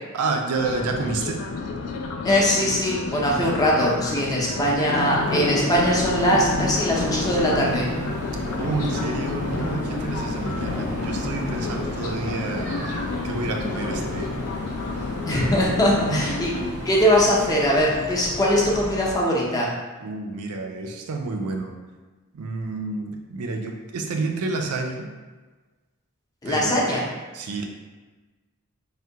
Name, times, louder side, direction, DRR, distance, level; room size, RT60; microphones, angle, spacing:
voice 1, 0.1-1.4 4.4-4.8 8.5-12.7 13.2-14.5 16.1-16.2 20.0-21.7 22.3-25.1 26.4-27.1 27.3-27.7, right 3 dB, 85° right, 3 dB, 0.4 m, -29 dB
sound 1, 0.6-16.7, left 4 dB, 80° left, 0.4 m, -32 dB
voice 2, 2.2-7.9 15.3-16.5 16.8-19.7 26.4-27.0, equal, 15° left, -4 dB, 0.5 m, -21 dB
sound 2, 4.9-18.4, left 1 dB, 65° left, 0.8 m, -32 dB
sound 3, 5.7-19.1, equal, 35° right, 0.6 m, -36 dB
3.4 x 2.2 x 2.7 m, 1.3 s
head